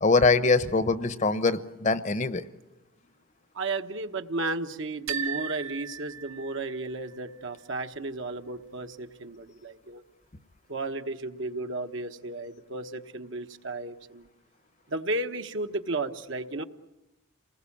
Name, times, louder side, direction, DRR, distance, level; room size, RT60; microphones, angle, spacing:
voice 1, 0.0-2.4, left 3 dB, 35° left, 13 dB, 0.9 m, -23 dB
voice 2, 3.5-10.0 10.7-14.3 14.9-16.6, right 2 dB, 65° right, 6 dB, 1.2 m, -33 dB
sound 1, 5.1-7.0, right 8 dB, 85° right, 1.4 m, -36 dB
29.0 x 20.0 x 8.7 m, 1.0 s
head